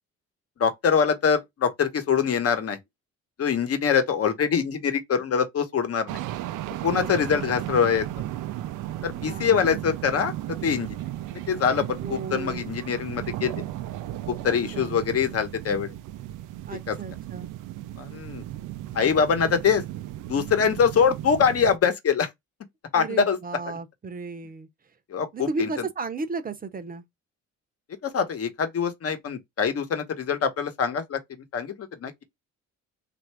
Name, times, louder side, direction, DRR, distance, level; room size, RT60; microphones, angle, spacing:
voice 1, 0.6-2.8 3.4-6.2 6.8-8.0 9.0-10.3 10.6-11.0 11.5-13.6 14.3-15.9 16.9-17.0 18.0-18.4 18.9-19.8 20.3-22.3 22.9-23.4 25.1-25.7 28.0-31.2 31.5-32.2, left 6 dB, 50° left, 1.0 m, -24 dB
sound 1, 6.1-21.8, right 14 dB, 85° right, 0.5 m, -35 dB
voice 2, 6.9-7.5 9.2-9.8 12.0-12.8 14.5-14.9 16.7-17.5 23.0-24.7 25.3-27.0, right 4 dB, 30° right, 0.7 m, -34 dB
3.2 x 2.6 x 4.5 m
cardioid pair, 90°, 30 cm